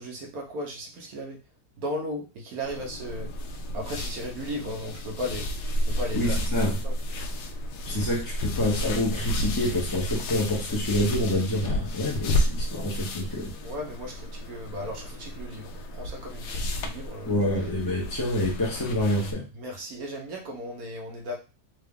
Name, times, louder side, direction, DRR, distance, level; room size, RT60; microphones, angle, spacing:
voice 1, 0.0-1.4 1.8-3.3 3.7-5.5 5.9-6.4 6.8-6.9 13.6-17.3 19.5-21.4, equal, 65° right, 1.2 m, -35 dB
sound 1, 2.6-19.3, equal, 80° left, 1.1 m, -31 dB
voice 2, 6.1-6.7 7.9-13.5 17.3-19.4, left 1 dB, 20° left, 0.5 m, -27 dB
3.7 x 2.3 x 3.5 m
omnidirectional pair, 1.8 m